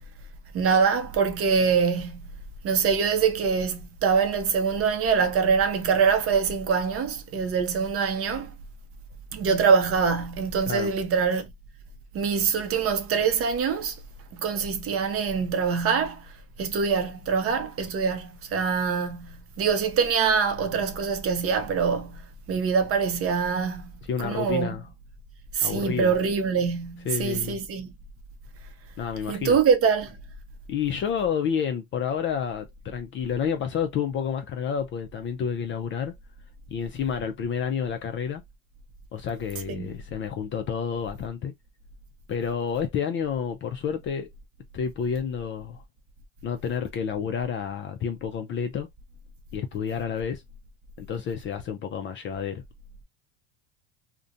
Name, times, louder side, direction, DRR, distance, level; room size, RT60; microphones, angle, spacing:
voice 1, 0.5-2.3 2.6-8.5 9.3-11.5 12.1-14.0 14.3-16.3 16.6-23.8 24.2-24.8 25.5-27.9 29.3-30.2 39.7-39.9, right 6 dB, 35° right, 0.6 m, -24 dB
voice 2, 24.1-24.9 25.6-26.2 27.1-27.6 29.0-29.6 30.7-36.1 36.7-38.4 39.1-41.5 42.3-44.3 44.7-45.8 46.4-48.9 49.5-50.4 51.0-52.6, left 7 dB, 30° left, 0.4 m, -29 dB
2.5 x 2.1 x 2.5 m
supercardioid pair, 105°, 39 cm